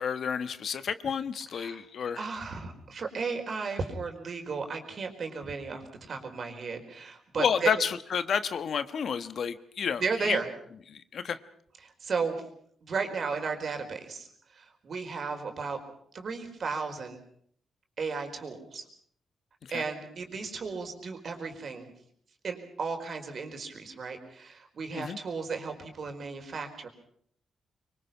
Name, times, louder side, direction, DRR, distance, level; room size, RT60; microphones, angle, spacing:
voice 1, 0.0-2.2 7.4-10.4 10.9-11.4 19.7-19.8 24.9-25.2, left 7 dB, 60° left, 12 dB, 1.3 m, -30 dB
voice 2, 2.1-7.7 10.0-10.5 11.8-12.4 12.8-15.8 16.1-17.2 18.0-18.8 19.7-21.9 22.4-26.9, right 5 dB, 50° right, 5 dB, 4.7 m, -34 dB
25.0 x 24.0 x 6.0 m, 0.64 s
cardioid pair, 105°, 0 cm